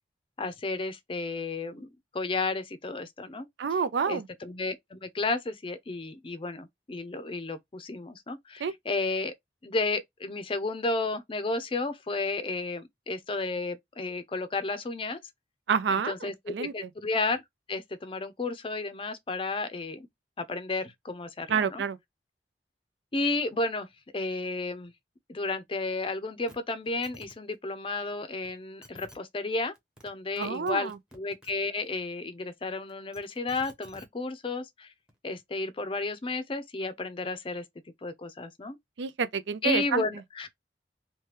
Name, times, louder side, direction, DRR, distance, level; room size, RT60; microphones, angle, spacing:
voice 1, 0.4-3.5 4.1-9.3 9.6-15.2 15.9-17.4 17.7-20.1 20.4-21.8 23.1-23.9 24.1-24.9 25.3-29.7 30.0-34.9 35.2-37.6 38.0-38.8 39.6-40.5, left 3 dB, 30° left, 0.5 m, -32 dB
voice 2, 3.6-4.3 8.6-8.7 15.7-16.7 21.5-22.0 30.3-31.0 39.0-40.0, right 6 dB, 80° right, 0.4 m, -28 dB
sound 1, 26.5-26.6 26.8-27.3 28.4-28.5 28.8-29.2 29.8-30.1 30.4-31.5 32.9-34.1 35.1-35.2, equal, 5° right, 0.8 m, -51 dB
3.2 x 2.2 x 2.9 m
head